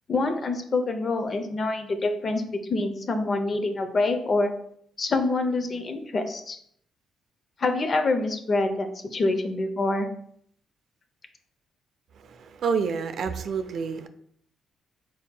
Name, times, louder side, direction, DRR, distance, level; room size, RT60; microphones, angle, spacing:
voice 1, 0.1-4.5 5.0-6.6 7.6-10.1, left 2 dB, 45° left, 7 dB, 0.6 m, -26 dB
voice 2, 12.2-14.1, right 5 dB, 60° right, 9 dB, 0.4 m, -28 dB
4.3 x 4.0 x 2.2 m, 0.67 s
cardioid pair, 90°, 0 cm